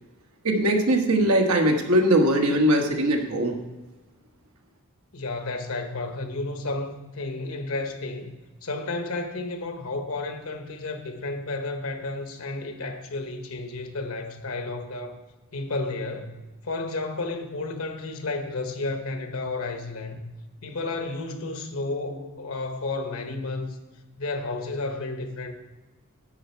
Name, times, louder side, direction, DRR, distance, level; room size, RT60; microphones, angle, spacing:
voice 1, 0.4-3.6, right 1 dB, 80° right, 1.4 m, -21 dB
voice 2, 5.1-8.4 8.6-15.2 15.5-20.3 20.6-23.8 24.2-25.5, left 2 dB, 70° left, 1.1 m, -32 dB
10.5 x 7.8 x 4.5 m
head